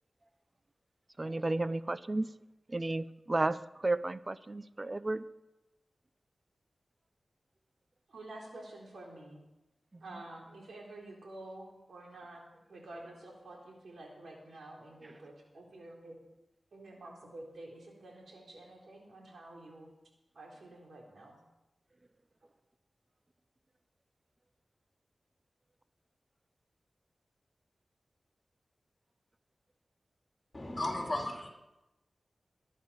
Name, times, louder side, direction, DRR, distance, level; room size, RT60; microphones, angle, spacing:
voice 1, 1.2-2.3 2.7-5.3 9.9-10.0, right 2 dB, 30° right, 14 dB, 0.7 m, -33 dB
voice 2, 8.1-9.5 10.0-12.4 12.7-16.2 16.7-19.9 20.3-21.4, right 2 dB, 85° right, -1 dB, 4.1 m, -49 dB
voice 3, 30.5-31.5, left 1 dB, 30° left, 0 dB, 4.0 m, -35 dB
20.5 x 11.0 x 5.8 m, 0.98 s
wide cardioid pair, 65°, 0 cm